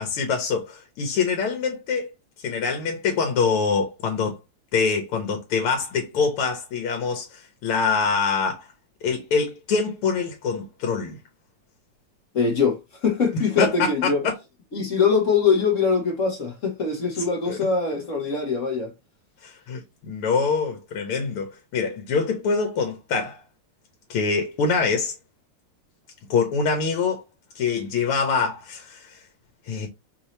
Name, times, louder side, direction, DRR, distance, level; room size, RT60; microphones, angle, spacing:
voice 1, 0.0-2.1 2.4-4.4 4.7-8.7 9.0-11.2 13.6-14.4 17.5-17.6 19.4-23.4 24.1-25.1 26.3-27.2 27.6-29.2 29.7-29.9, left 5 dB, 85° left, 1.8 m, -25 dB
voice 2, 12.3-14.2 14.7-18.9, left 5 dB, 45° left, 1.2 m, -23 dB
5.2 x 2.7 x 3.1 m
omnidirectional pair, 2.4 m